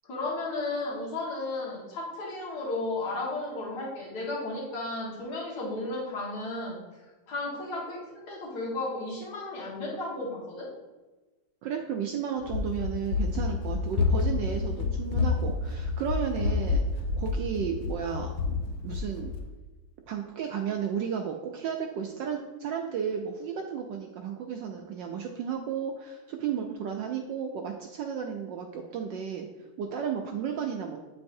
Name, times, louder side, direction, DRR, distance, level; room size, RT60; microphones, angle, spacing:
voice 1, 0.0-6.8 7.3-10.7, left 2 dB, 50° left, -4 dB, 2.1 m, -34 dB
voice 2, 11.6-18.6 18.8-19.3 20.1-29.5 29.8-31.0, right 7 dB, 75° right, 3 dB, 1.1 m, -33 dB
Run, 12.4-19.5, left 4 dB, 75° left, 0.9 m, -29 dB
9.3 x 4.0 x 2.6 m, 1.2 s
omnidirectional pair, 2.3 m